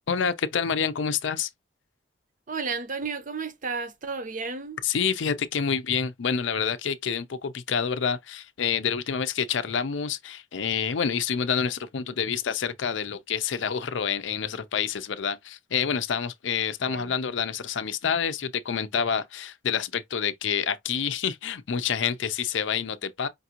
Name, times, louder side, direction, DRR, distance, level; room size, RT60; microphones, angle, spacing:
voice 1, 0.1-1.5 4.8-23.3, left 7 dB, 70° left, 0.5 m, -28 dB
voice 2, 2.5-4.8 16.9-17.1, right 4 dB, 45° right, 0.6 m, -32 dB
5.2 x 2.5 x 2.8 m
head